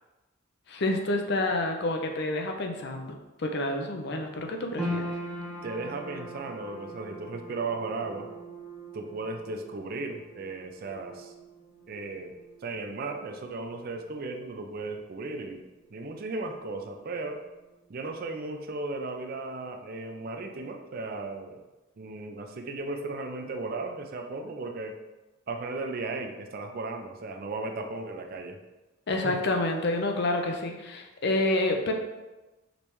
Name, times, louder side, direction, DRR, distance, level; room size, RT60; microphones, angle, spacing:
voice 1, 0.7-5.1 29.1-31.9, left 2 dB, 55° left, 3 dB, 0.6 m, -28 dB
sound 1, 4.8-17.2 17.4-18.4 18.8-18.9, equal, 5° left, 1.1 m, -42 dB
voice 2, 5.6-8.3 8.9-11.3 11.9-12.4 12.6-15.6 15.9-17.4 17.9-21.6 22.0-25.0 25.5-28.6 29.2-29.4, right 3 dB, 45° right, 5 dB, 0.4 m, -36 dB
5.1 x 3.2 x 3.0 m, 1.1 s
head